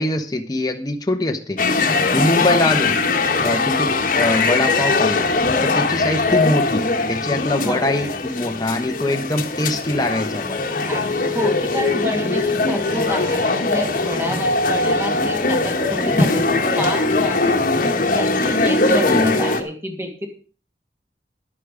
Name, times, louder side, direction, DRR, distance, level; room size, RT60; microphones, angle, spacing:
voice 1, 0.0-1.6 2.1-3.0 3.4-5.3 5.6-10.7 19.1-19.3, left 1 dB, 20° left, 4 dB, 1.1 m, -23 dB
sound 1, 1.6-19.6, left 3 dB, 50° left, 1.4 m, -20 dB
voice 2, 7.6-8.0 10.9-17.5 18.1-20.3, equal, 15° right, 3 dB, 2.5 m, -28 dB
11.0 x 10.0 x 5.1 m, 0.38 s
head